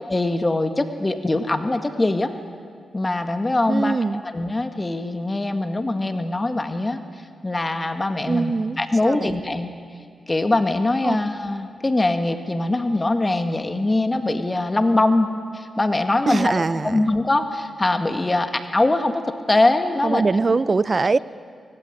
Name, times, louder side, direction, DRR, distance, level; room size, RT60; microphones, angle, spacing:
voice 1, 0.1-2.3 2.9-4.0 4.3-7.0 7.4-9.7 10.3-15.3 15.5-20.2, left 2 dB, 30° left, 7 dB, 1.9 m, -22 dB
voice 2, 3.7-4.2 8.3-9.4 11.0-11.2 16.3-17.1 20.0-21.2, right 3 dB, 45° right, 18 dB, 0.7 m, -22 dB
22.0 x 19.5 x 9.6 m, 2.1 s
supercardioid pair, 45°, 0 cm